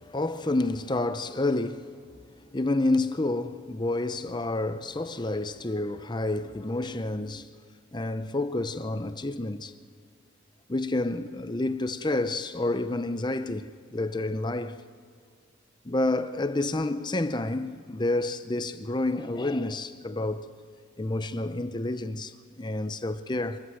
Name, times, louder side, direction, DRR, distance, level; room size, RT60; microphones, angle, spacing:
voice 1, 0.0-1.9 2.5-7.5 7.9-9.7 10.7-14.8 15.8-20.5 21.0-23.6, left 2 dB, 20° left, 0.7 m, -29 dB
24.5 x 14.5 x 7.7 m
head